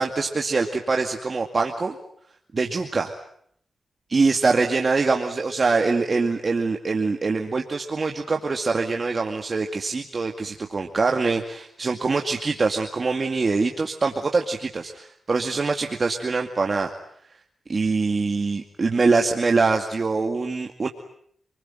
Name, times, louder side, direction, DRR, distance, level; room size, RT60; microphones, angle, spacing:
voice 1, 0.0-2.0 2.5-3.1 4.1-16.9 17.7-20.9, right 4 dB, 45° right, 3 dB, 2.3 m, -24 dB
28.5 x 21.0 x 9.1 m, 0.66 s
cardioid pair, 65°, 0 cm